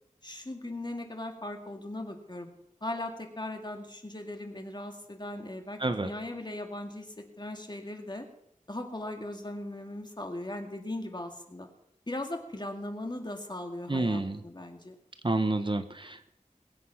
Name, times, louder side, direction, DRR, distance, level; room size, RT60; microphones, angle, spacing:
voice 1, 0.2-2.5 2.8-8.3 8.7-11.7 12.1-14.9, left 1 dB, 35° left, 4 dB, 2.2 m, -38 dB
voice 2, 13.9-14.4 15.2-16.3, right 2 dB, 40° right, 9 dB, 1.0 m, -29 dB
21.0 x 8.5 x 5.8 m, 0.78 s
wide cardioid pair, 60°, 13 cm